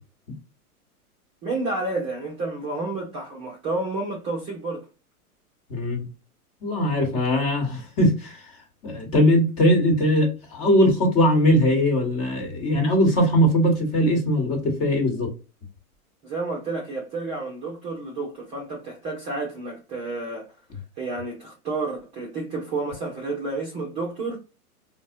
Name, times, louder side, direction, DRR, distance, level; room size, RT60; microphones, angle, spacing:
voice 1, 1.4-4.9 16.2-20.5 21.0-24.4, right 3 dB, 15° right, 0.4 m, -30 dB
voice 2, 5.7-6.1 6.6-8.4 8.8-15.3, equal, 30° left, 1.2 m, -20 dB
3.9 x 2.1 x 2.6 m
hypercardioid pair, 115°, 45 cm